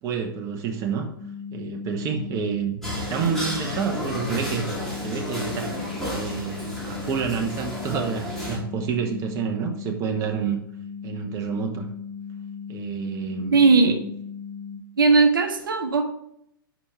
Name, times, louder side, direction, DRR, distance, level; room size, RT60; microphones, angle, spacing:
voice 1, 0.0-1.1 1.5-5.8 6.1-10.6 11.0-11.9 12.7-13.6, right 6 dB, 25° right, 3 dB, 1.0 m, -29 dB
sound 1, 1.2-14.8, left 6 dB, 50° right, 2.6 m, -37 dB
sound 2, 2.8-8.6, left 1 dB, 5° left, 2.2 m, -32 dB
voice 2, 13.5-14.0 15.0-16.0, right 4 dB, 65° right, 5 dB, 0.9 m, -17 dB
5.0 x 5.0 x 5.7 m, 0.74 s
figure-of-eight pair, 110°, 12 cm